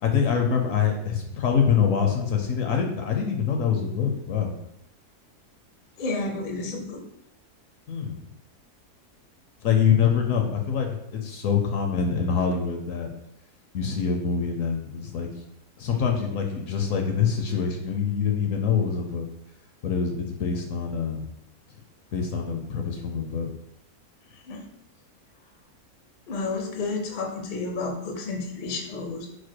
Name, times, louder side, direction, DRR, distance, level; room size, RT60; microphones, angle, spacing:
voice 1, 0.0-4.5 7.9-8.2 9.6-13.1 13.7-15.3 15.8-19.3 19.8-21.3 22.1-23.5, left 7 dB, 70° left, 3 dB, 0.9 m, -25 dB
voice 2, 6.0-7.0 24.5-24.7 26.3-29.3, left 3 dB, 50° left, 2 dB, 0.5 m, -31 dB
4.3 x 2.2 x 4.5 m, 0.80 s
omnidirectional pair, 1.6 m